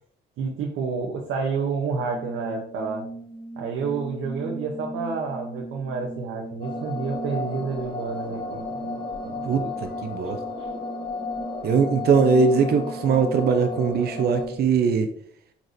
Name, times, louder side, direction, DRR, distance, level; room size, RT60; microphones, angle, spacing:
voice 1, 0.4-3.1 3.6-9.0 9.2-9.7 10.6-10.7, right 5 dB, 90° right, -1 dB, 0.8 m, -29 dB
sound 1, 2.0-14.5, right 2 dB, 5° left, 0.8 m, -38 dB
sound 2, 6.6-14.5, left 4 dB, 20° left, 1.5 m, -34 dB
voice 2, 10.0-10.4 11.6-15.1, right 5 dB, 55° right, 6 dB, 0.5 m, -20 dB
4.6 x 4.0 x 2.6 m, 0.64 s
cardioid pair, 90°, 20 cm